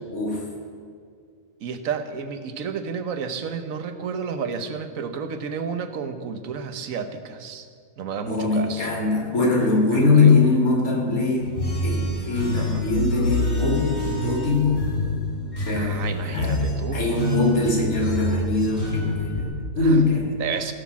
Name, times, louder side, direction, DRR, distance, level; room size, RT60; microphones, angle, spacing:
voice 1, 0.1-0.4 8.2-14.8 15.6-20.3, left 3 dB, 80° left, -1 dB, 2.7 m, -22 dB
voice 2, 1.6-7.7 8.0-8.9 9.9-10.4 12.6-12.9 15.7-17.0 19.8-20.0 20.4-20.7, right 6 dB, 75° right, 9 dB, 1.3 m, -31 dB
sound 1, 11.4-19.4, left 1 dB, 50° left, 2.3 m, -27 dB
16.0 x 6.6 x 7.3 m, 2.1 s
omnidirectional pair, 1.5 m